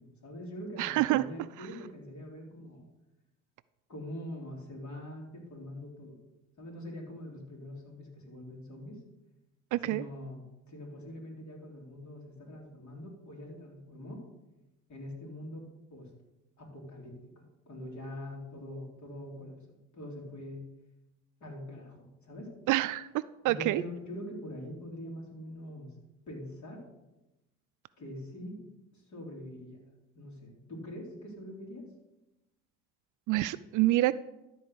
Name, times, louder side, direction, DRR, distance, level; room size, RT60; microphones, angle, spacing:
voice 1, 0.0-2.9 3.9-6.2 6.6-9.0 9.8-10.4 10.7-14.2 14.9-15.6 15.9-16.1 16.6-20.7 21.4-22.5 23.5-25.9 26.3-26.8 28.0-28.6 28.9-29.8 30.1-31.9, left 1 dB, 45° left, -1 dB, 4.0 m, -44 dB
voice 2, 0.8-1.2 9.7-10.0 22.7-23.1 23.4-23.8 33.3-34.1, right 16 dB, 55° right, 16 dB, 0.4 m, -27 dB
13.0 x 4.7 x 6.6 m, 0.98 s
hypercardioid pair, 75°, 39 cm